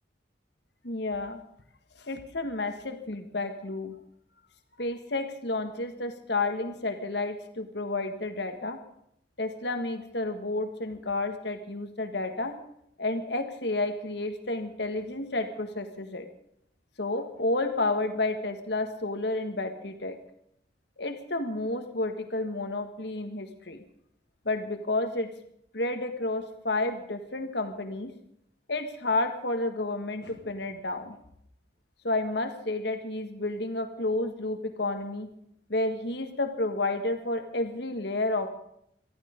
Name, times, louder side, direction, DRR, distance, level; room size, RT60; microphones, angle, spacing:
voice 1, 0.8-1.4 2.0-3.9 4.8-8.8 9.4-12.6 13.0-16.3 17.0-20.2 21.0-23.8 24.4-25.3 25.7-28.1 28.7-31.2 32.0-35.3 35.7-38.5, left 2 dB, 60° left, 7 dB, 1.7 m, -31 dB
19.5 x 14.0 x 5.2 m, 0.72 s
head